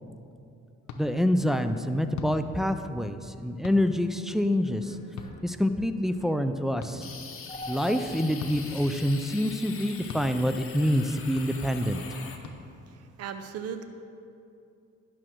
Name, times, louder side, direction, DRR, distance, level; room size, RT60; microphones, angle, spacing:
sound 1, 0.9-1.0 2.1-2.4 3.6-3.8 5.2-5.3 6.8-6.9 8.4-8.6 10.1-10.3 11.4-11.5 12.4-12.6, left 6 dB, 70° left, 0.8 m, -38 dB
voice 1, 1.0-5.0 5.4-7.1 7.7-12.0, equal, ahead, 9 dB, 0.4 m, -26 dB
sound 2, 1.9-10.8, left 1 dB, 20° left, 1.4 m, -49 dB
sound 3, 7.0-12.4, left 5 dB, 45° left, 1.0 m, -43 dB
voice 2, 12.8-13.9, right 8 dB, 55° right, 8 dB, 0.6 m, -37 dB
10.5 x 6.2 x 4.5 m, 2.6 s
cardioid pair, 90°, 30 cm